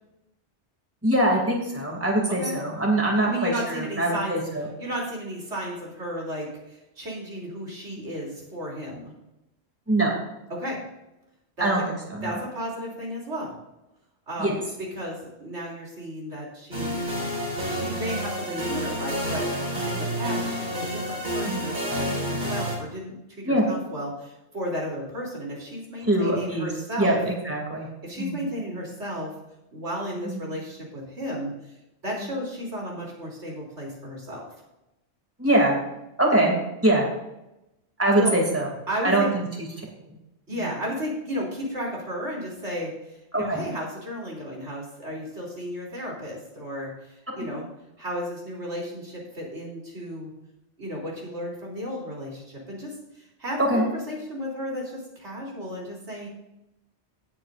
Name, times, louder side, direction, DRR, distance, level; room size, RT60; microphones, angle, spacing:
voice 1, 1.0-4.7 8.0-8.1 9.9-10.2 11.6-11.8 12.1-12.4 14.4-14.5 21.5-21.6 23.4-23.7 26.0-26.7 27.0-27.9 28.2-28.4 30.2-30.4 32.2-32.3 35.4-35.8 36.2-36.6 36.8-37.1 38.0-38.7 39.0-39.7 40.6-40.7 43.3-43.6 47.4-47.5 53.6-53.8, right 1 dB, 10° right, -1 dB, 2.8 m, -23 dB
voice 2, 3.2-4.4 4.8-9.1 10.5-10.8 11.6-11.9 12.2-13.6 14.3-14.6 15.0-16.9 17.7-19.5 19.8-27.2 28.0-29.3 29.7-31.5 32.0-34.5 38.2-38.4 38.9-39.3 40.5-42.9 43.3-47.7 48.0-50.3 50.8-56.3, equal, 75° right, -3 dB, 3.8 m, -33 dB
sound 1, 16.7-22.8, equal, 40° right, 3.8 m, -29 dB
17.5 x 9.1 x 2.6 m, 0.91 s
omnidirectional pair, 1.2 m